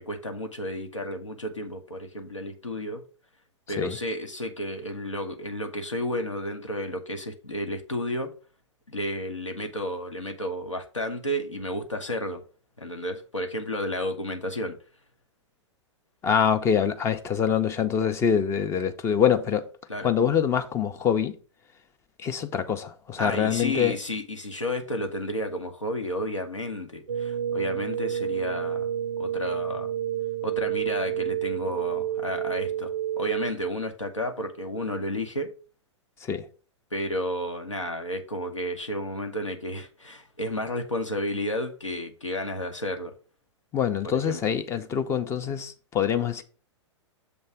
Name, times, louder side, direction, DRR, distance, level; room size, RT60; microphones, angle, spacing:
voice 1, 0.0-3.0 3.7-8.3 8.9-12.4 12.8-14.8 19.9-20.1 23.2-28.9 29.2-29.9 30.4-35.5 36.9-43.1 44.1-44.5, left 1 dB, 80° left, 1.2 m, -32 dB
voice 2, 16.2-19.7 20.0-21.4 22.2-24.0 36.2-36.5 43.7-46.4, left 8 dB, 15° left, 0.6 m, -25 dB
sound 1, 27.1-33.5, right 10 dB, 60° right, 0.4 m, -29 dB
7.0 x 3.2 x 5.7 m
figure-of-eight pair, 105°, 16 cm